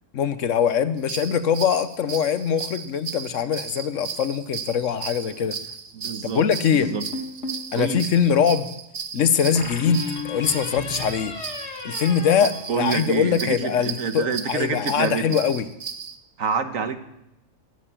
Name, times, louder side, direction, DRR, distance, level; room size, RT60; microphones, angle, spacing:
voice 1, 0.1-5.6 6.2-6.9 7.7-8.7 9.1-11.3 11.8-15.7, left 7 dB, 70° left, 12 dB, 1.2 m, -22 dB
sound 1, 1.0-16.2, right 7 dB, 60° right, 1.2 m, -36 dB
voice 2, 5.9-6.4 6.7-7.0 7.7-8.0 12.4-15.3 16.4-17.0, right 5 dB, 80° right, 9 dB, 1.6 m, -27 dB
sound 2, 6.8-7.7 9.6-13.3, left 3 dB, 55° left, 1.8 m, -34 dB
15.5 x 9.1 x 8.9 m, 0.84 s
omnidirectional pair, 1.4 m